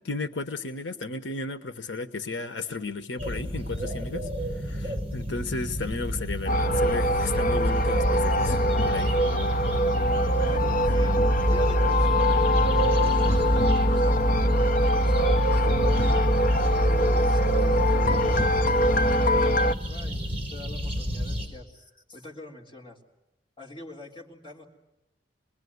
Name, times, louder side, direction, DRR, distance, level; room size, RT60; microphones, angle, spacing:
voice 1, 0.0-4.3 4.6-4.8 5.1-9.1, left 3 dB, 85° left, 9 dB, 1.2 m, -34 dB
sound 1, 3.2-21.5, equal, 30° right, 5.3 m, -32 dB
voice 2, 4.7-5.0 10.0-16.2 16.8-23.0 23.6-24.7, left 2 dB, 30° left, -1 dB, 3.8 m, -45 dB
sound 2, 6.5-19.7, equal, 50° left, 0.9 m, -22 dB
27.0 x 21.0 x 9.6 m, 0.95 s
head